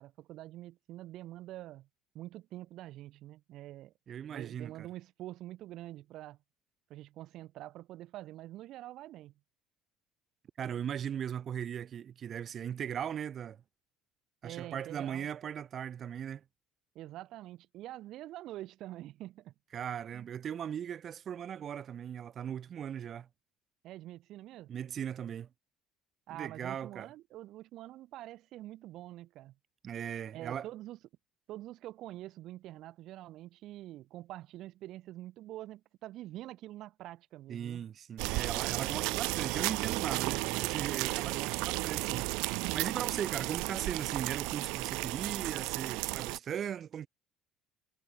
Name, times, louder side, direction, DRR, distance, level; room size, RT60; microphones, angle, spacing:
voice 1, 0.0-1.9 2.1-3.9 4.3-6.4 6.9-9.3 14.4-15.3 16.9-19.5 20.1-20.3 23.8-24.7 26.3-29.5 30.3-31.0 31.5-37.8, right 15 dB, 50° right, 3.3 m, -46 dB
voice 2, 4.1-4.9 10.6-13.6 14.4-16.4 19.7-23.3 24.7-25.5 26.3-27.1 29.8-30.7 37.5-47.1, right 9 dB, 30° right, 3.8 m, -38 dB
sound 1, 38.2-46.4, right 28 dB, 80° right, 0.6 m, -33 dB
cardioid pair, 175°, 0 cm